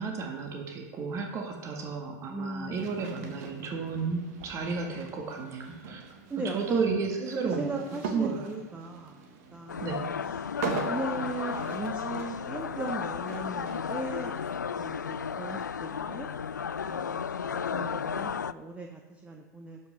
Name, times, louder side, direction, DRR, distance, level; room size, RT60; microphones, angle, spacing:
voice 1, 0.0-6.0 6.5-7.6 8.1-8.4 9.8-10.1, right 4 dB, 30° right, 2 dB, 1.7 m, -32 dB
voice 2, 2.3-3.0 6.3-9.2 9.5-9.9 10.9-16.3 16.8-19.8, right 2 dB, 15° right, 3 dB, 1.1 m, -38 dB
sound 1, 2.7-15.6, right 5 dB, 55° right, 1.6 m, -42 dB
sound 2, 9.7-18.5, left 7 dB, 85° left, 0.4 m, -33 dB
11.5 x 5.5 x 6.3 m, 1.2 s
figure-of-eight pair, 90°, 10 cm